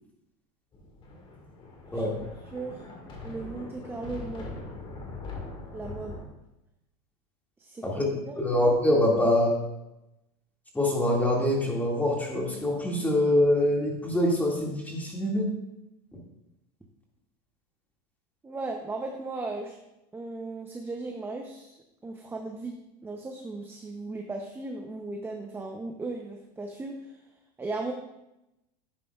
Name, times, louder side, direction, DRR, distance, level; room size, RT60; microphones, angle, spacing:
Thunder, 0.7-6.2, left 3 dB, 25° left, 1.8 m, -41 dB
voice 1, 2.5-2.8 3.2-4.6 5.7-6.2 7.6-7.8 8.3-8.4 18.4-19.7 20.1-21.8 22.0-22.8 23.0-27.1 27.6-27.9, right 3 dB, 10° right, 2 dB, 0.7 m, -36 dB
voice 2, 8.4-9.6 10.7-15.5 16.1-16.2, left 1 dB, 10° left, -2 dB, 2.1 m, -24 dB
11.0 x 8.9 x 2.4 m, 0.91 s
supercardioid pair, 135°, 21 cm